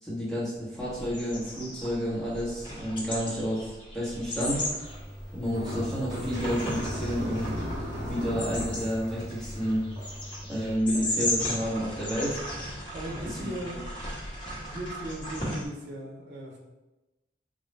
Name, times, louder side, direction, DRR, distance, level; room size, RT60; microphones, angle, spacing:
voice 1, 0.0-4.6 5.3-7.6 8.0-9.9 10.5-12.4 13.2-13.5, equal, ahead, -9 dB, 1.1 m, -30 dB
sound 1, 0.8-15.6, left 1 dB, 30° left, 1.0 m, -36 dB
sound 2, 4.8-10.8, equal, 20° right, 0.9 m, -37 dB
voice 2, 12.9-13.8 14.7-16.6, right 1 dB, 65° right, -1 dB, 0.9 m, -38 dB
3.8 x 2.3 x 3.2 m, 1.0 s
head